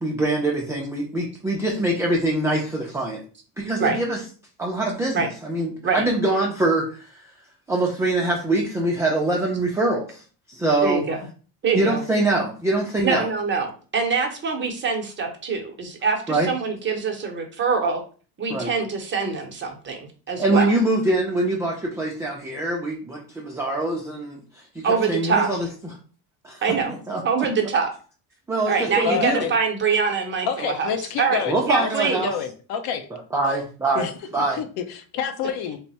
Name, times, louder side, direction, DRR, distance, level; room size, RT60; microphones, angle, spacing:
voice 1, 0.0-3.2 3.6-4.2 4.6-7.1 7.7-10.2 10.5-11.1 11.7-13.3 16.3-16.5 18.5-18.7 20.4-25.9 26.4-26.6 27.1-27.2 28.5-29.5 31.5-32.3 33.3-34.1 34.3-34.6, right 2 dB, 5° right, -3 dB, 0.3 m, -24 dB
voice 2, 10.8-11.2 11.6-12.0 13.0-18.0 18.4-20.7 24.8-25.5 26.6-26.9 27.2-27.9 28.7-30.9 31.2-32.3, right 5 dB, 25° right, 2 dB, 0.7 m, -24 dB
voice 3, 29.0-29.5 30.5-31.9 32.2-33.1 33.9-35.8, left 7 dB, 60° left, 8 dB, 0.6 m, -28 dB
3.4 x 2.0 x 4.0 m, 0.39 s
cardioid pair, 140°, 42 cm